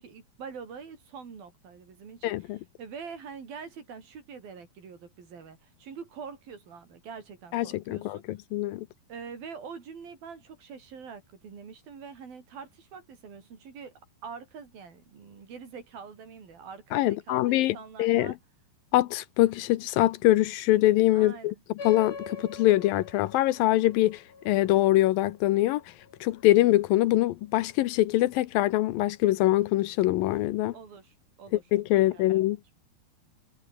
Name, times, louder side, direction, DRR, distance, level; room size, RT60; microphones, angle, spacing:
voice 1, 0.0-2.5 2.8-8.2 9.1-13.9 14.2-18.4 21.1-21.5 30.7-31.6 31.9-32.4, right 6 dB, 75° right, 6.1 m, -44 dB
voice 2, 2.2-2.6 7.5-8.9 16.9-18.3 18.9-21.5 21.8-25.8 26.2-30.7 31.7-32.6, left 16 dB, 80° left, 2.5 m, -24 dB
sound 1, 21.8-26.7, left 4 dB, 55° left, 7.0 m, -44 dB
omnidirectional pair, 4.2 m